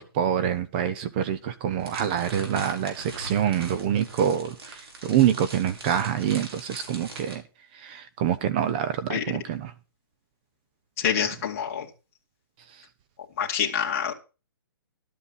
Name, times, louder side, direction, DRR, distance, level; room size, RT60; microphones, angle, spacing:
voice 1, 0.0-7.4 7.8-9.7, right 9 dB, 25° right, 0.7 m, -26 dB
sound 1, 1.8-7.3, right 2 dB, 85° right, 5.7 m, -41 dB
voice 2, 11.0-11.9 13.4-14.1, left 8 dB, 35° left, 2.1 m, -26 dB
12.0 x 8.3 x 5.5 m
hypercardioid pair, 170°, 13 cm